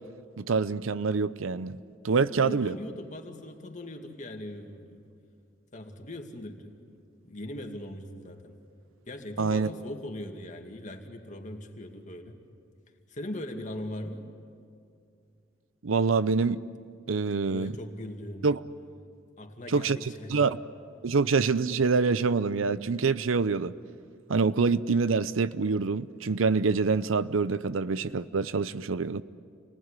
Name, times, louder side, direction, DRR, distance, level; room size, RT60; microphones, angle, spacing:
voice 1, 0.4-1.8 2.0-2.8 9.4-9.7 15.8-16.6 17.1-17.8 18.4-18.6 19.7-20.6 21.0-23.7 24.3-29.2, right 4 dB, 85° right, 0.6 m, -26 dB
voice 2, 2.2-5.0 5.7-6.9 7.2-8.6 9.1-12.4 13.1-14.3 17.5-18.5 19.4-20.5, left 1 dB, 40° left, 2.4 m, -40 dB
28.5 x 19.5 x 9.9 m
head